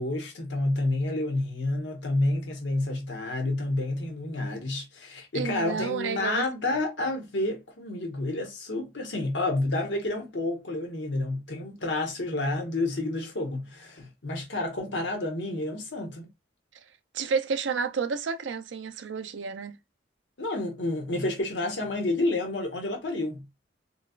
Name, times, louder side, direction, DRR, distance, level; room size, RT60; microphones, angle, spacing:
voice 1, 0.0-16.3 20.4-23.4, left 2 dB, 75° left, 1.1 m, -29 dB
voice 2, 5.3-6.4 17.1-19.7, right 5 dB, 80° right, 0.4 m, -30 dB
4.0 x 2.3 x 2.4 m
head